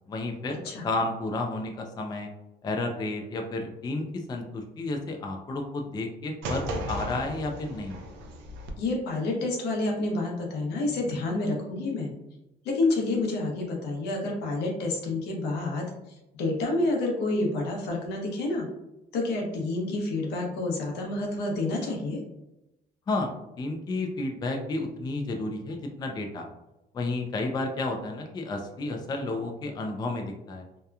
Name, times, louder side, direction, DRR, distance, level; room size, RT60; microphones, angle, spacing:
voice 1, 0.1-2.3 2.6-8.0 23.1-23.3 23.6-26.5 26.9-30.7, left 2 dB, 25° left, 3 dB, 0.3 m, -31 dB
sound 1, 6.4-8.7, right 1 dB, 85° right, 0.5 m, -35 dB
voice 2, 8.8-12.1 12.6-15.9 16.3-18.7 19.1-22.2, left 2 dB, 80° left, -1 dB, 0.8 m, -28 dB
2.8 x 2.2 x 2.3 m, 0.93 s
cardioid pair, 110°, 17 cm